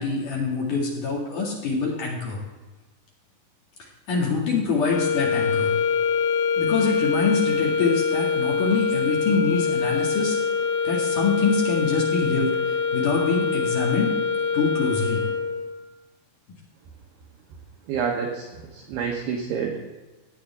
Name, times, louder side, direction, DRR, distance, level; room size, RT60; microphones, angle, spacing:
voice 1, 0.0-2.4 4.1-5.7 6.6-10.4 10.8-14.1 14.5-15.2, left 4 dB, 50° left, -3 dB, 2.9 m, -25 dB
sound 1, 4.8-15.7, left 6 dB, 70° left, 3.2 m, -24 dB
voice 2, 17.9-18.5 18.7-19.8, right 6 dB, 75° right, 0 dB, 2.5 m, -28 dB
16.5 x 8.6 x 3.5 m, 1.2 s
omnidirectional pair, 5.8 m